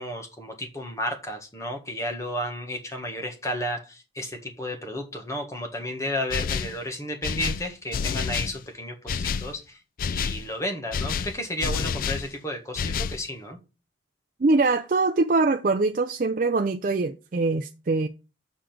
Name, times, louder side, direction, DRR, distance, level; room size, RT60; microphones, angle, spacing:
voice 1, 0.0-9.8 10.1-13.6, left 1 dB, 15° left, 1.6 m, -32 dB
sound 1, 6.3-6.8 7.2-8.6 9.1-9.5 10.0-10.4 10.9-12.3 12.8-13.2, left 6 dB, 45° left, 0.3 m, -28 dB
voice 2, 14.4-18.1, right 3 dB, 45° right, 0.4 m, -23 dB
6.8 x 5.0 x 6.0 m
head